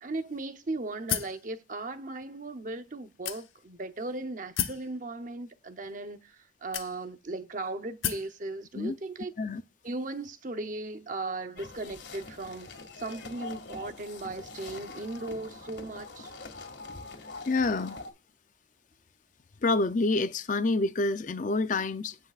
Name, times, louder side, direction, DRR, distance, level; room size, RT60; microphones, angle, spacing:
voice 1, 0.0-6.4 6.6-9.3 9.8-12.7 13.0-16.3, right 2 dB, 40° right, 0.7 m, -37 dB
sound 1, 1.1-1.4 2.2-2.3 3.3-3.8 4.6-4.9 5.8-5.9 6.7-7.3 8.0-8.3, left 9 dB, 85° left, 0.9 m, -32 dB
sound 2, 11.6-18.1, left 3 dB, 60° left, 2.0 m, -44 dB
voice 2, 17.5-18.0 19.6-22.2, left 3 dB, 40° left, 0.5 m, -27 dB
16.5 x 5.6 x 2.4 m
head